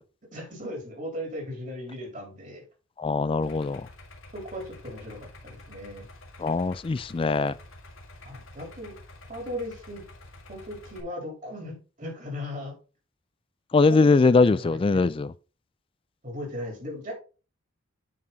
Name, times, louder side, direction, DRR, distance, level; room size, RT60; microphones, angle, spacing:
voice 1, 0.3-2.6 4.3-6.1 8.2-8.9 9.3-10.0 10.5-12.7 13.9-15.1 16.2-17.1, left 1 dB, 40° right, 3.5 m, -37 dB
voice 2, 3.0-3.8 6.4-7.5 13.7-15.3, left 3 dB, 25° left, 0.3 m, -21 dB
Idling, 3.4-11.0, left 2 dB, 90° left, 1.8 m, -48 dB
8.6 x 4.8 x 3.9 m
head